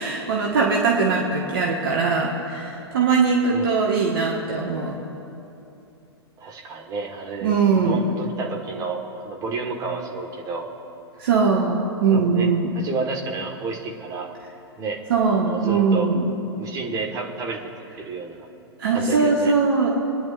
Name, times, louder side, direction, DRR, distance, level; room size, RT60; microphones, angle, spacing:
voice 1, 0.0-5.0 7.4-8.0 11.2-12.7 15.1-16.3 18.8-19.9, right 4 dB, 55° right, -2 dB, 1.6 m, -21 dB
voice 2, 6.4-7.5 7.8-10.7 12.1-12.5 12.7-14.4 14.8-15.0 15.3-16.2 16.6-17.7 18.0-18.5 18.9-19.5, right 4 dB, 25° right, 0 dB, 1.6 m, -30 dB
27.0 x 10.5 x 2.6 m, 2.9 s
figure-of-eight pair, 105°, 14 cm